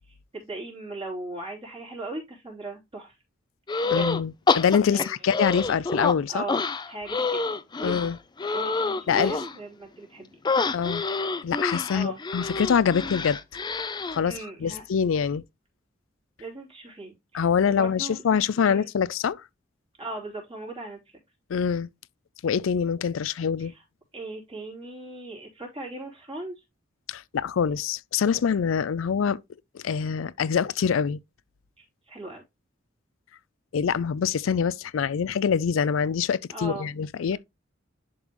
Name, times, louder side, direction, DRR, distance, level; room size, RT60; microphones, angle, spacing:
voice 1, 0.1-3.1 3.8-4.1 4.9-5.1 6.3-6.6 6.9-8.1 8.5-10.4 11.9-12.2 14.2-14.8 16.4-18.2 18.6-18.9 20.0-21.2 23.6-23.8 24.1-26.5 31.8-32.4 36.5-36.9, right 2 dB, 30° right, 3.2 m, -38 dB
sound 1, 3.7-4.2 4.5-6.2 6.5-9.6 10.4-14.2, left 4 dB, 20° left, 0.4 m, -27 dB
voice 2, 3.9-6.5 7.8-8.2 9.1-9.3 10.7-11.0 11.4-13.4 14.1-14.3 14.6-15.4 17.3-19.4 21.5-21.9 22.4-23.7 27.1-29.4 29.7-31.2 33.7-37.4, left 7 dB, 85° left, 0.4 m, -25 dB
11.0 x 3.8 x 3.0 m
head